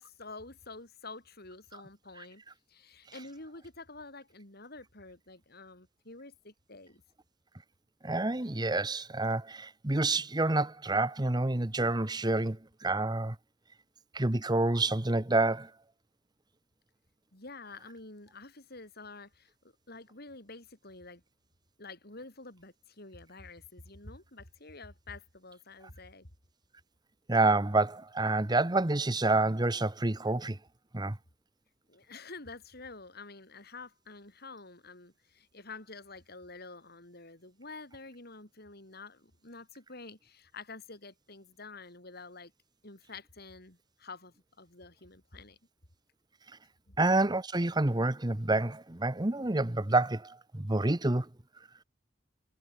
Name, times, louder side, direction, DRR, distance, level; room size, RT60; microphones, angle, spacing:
voice 1, 0.0-2.4 2.7-7.0 17.3-19.5 19.9-21.2 21.8-26.3 31.9-42.5 42.8-45.6 46.9-47.0, left 3 dB, 55° left, 6.3 m, -48 dB
voice 2, 8.0-13.3 14.1-15.7 27.3-30.6 30.9-31.2 47.0-51.3, right 2 dB, 20° right, 1.1 m, -28 dB
head